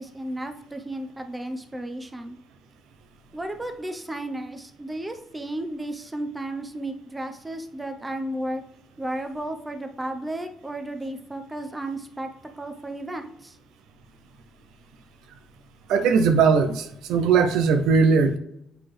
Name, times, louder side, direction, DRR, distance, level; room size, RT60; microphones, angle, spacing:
voice 1, 0.0-2.4 3.3-8.6 9.0-12.3 12.6-13.6, right 1 dB, 15° right, 6 dB, 0.8 m, -33 dB
voice 2, 15.9-18.4, right 5 dB, 90° right, 8 dB, 0.6 m, -19 dB
7.8 x 4.0 x 3.3 m, 0.77 s
cardioid pair, 90°, 0 cm